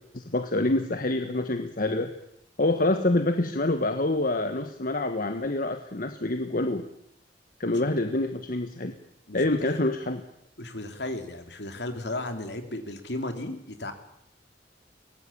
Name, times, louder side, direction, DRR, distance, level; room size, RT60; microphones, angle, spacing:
voice 1, 0.1-2.1 2.6-6.9 7.6-8.9 9.3-10.2, left 2 dB, 50° left, 7 dB, 1.4 m, -26 dB
voice 2, 10.6-13.9, left 2 dB, 70° left, 7 dB, 3.3 m, -35 dB
23.0 x 19.0 x 8.6 m, 0.75 s
head